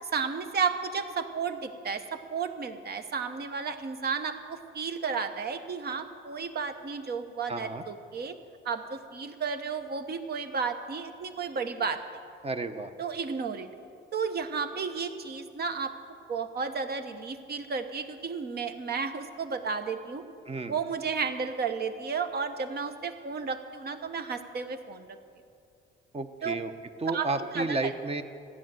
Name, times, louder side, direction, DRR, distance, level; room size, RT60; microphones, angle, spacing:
voice 1, 0.0-8.3 8.6-12.0 13.0-13.7 14.1-15.9 16.3-20.2 20.7-25.0 26.4-26.6 27.1-27.3 27.5-27.9, right 5 dB, 55° right, 8 dB, 1.1 m, -33 dB
voice 2, 7.5-7.8 12.4-12.9 20.4-20.8 26.1-26.7 27.0-28.2, right 3 dB, 30° right, 8 dB, 0.9 m, -32 dB
13.5 x 9.8 x 7.7 m, 2.4 s
cardioid pair, 90°, 20 cm